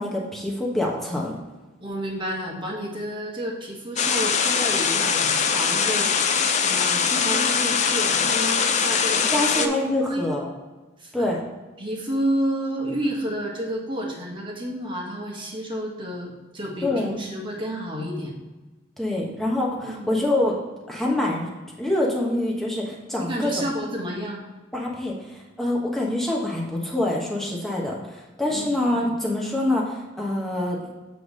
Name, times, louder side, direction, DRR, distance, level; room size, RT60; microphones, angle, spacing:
voice 1, 0.0-1.4 9.3-10.5 11.1-11.4 16.8-17.1 19.0-20.5 20.9-21.5 21.8-23.5 24.7-30.8, left 1 dB, ahead, -3 dB, 1.1 m, -25 dB
voice 2, 1.8-9.7 10.1-10.3 11.0-11.3 11.8-18.3 19.8-20.1 23.2-24.4 28.5-28.8, equal, 25° right, -1 dB, 1.4 m, -30 dB
sound 1, 4.0-9.7, left 6 dB, 35° left, 0.5 m, -22 dB
7.9 x 3.4 x 5.4 m, 1.2 s
head